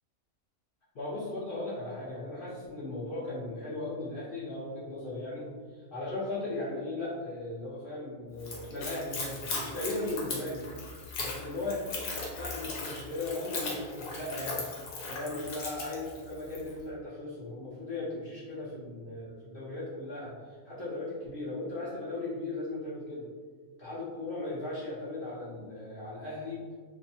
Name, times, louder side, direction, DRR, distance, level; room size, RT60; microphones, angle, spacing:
voice 1, 0.9-5.5 5.8-10.6 10.9-12.0 12.3-14.6 15.1-23.3 23.8-26.6, left 2 dB, 55° left, -8 dB, 0.7 m, -37 dB
Splash splatter / Trickle dribble, 8.4-16.7, left 3 dB, 85° left, 1.1 m, -38 dB
2.7 x 2.2 x 2.6 m, 1.5 s
omnidirectional pair, 1.5 m